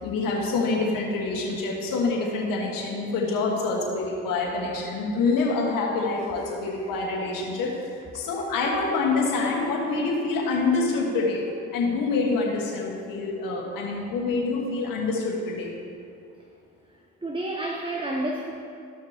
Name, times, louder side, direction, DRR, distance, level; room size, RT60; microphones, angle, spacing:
voice 1, 0.0-7.7 8.1-15.7, left 3 dB, 80° left, -2 dB, 1.7 m, -26 dB
voice 2, 17.2-18.5, right 1 dB, 15° right, 0 dB, 0.9 m, -30 dB
14.5 x 6.0 x 3.0 m, 2.5 s
supercardioid pair, 55°, 33 cm